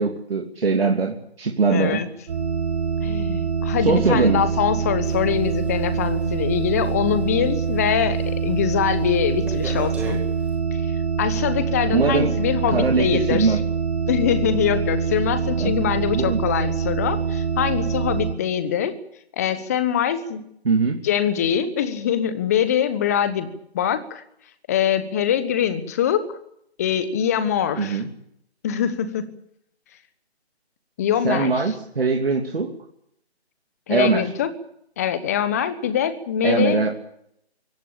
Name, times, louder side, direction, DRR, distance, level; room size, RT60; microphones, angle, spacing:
voice 1, 0.0-2.0 3.8-4.4 11.9-12.3 12.7-13.6 15.6-15.7 16.1-16.4 20.6-21.0 27.8-28.1 31.2-32.7 33.9-34.3 36.4-36.9, right 4 dB, 60° right, 2 dB, 3.0 m, -21 dB
voice 2, 1.7-2.1 3.0-10.2 10.7-13.6 14.1-18.9 19.4-20.4 21.0-24.2 24.7-26.3 26.8-28.0 28.6-29.3 31.0-31.7 33.9-34.5 35.0-36.9, left 9 dB, 15° left, 12 dB, 1.1 m, -23 dB
sound 1, 2.3-18.3, right 6 dB, 35° right, 5.0 m, -25 dB
sound 2, 5.0-7.8 8.2-8.5 8.9-10.6, right 4 dB, 5° right, 2.1 m, -38 dB
23.5 x 17.0 x 8.7 m, 0.74 s
figure-of-eight pair, 160°, 33 cm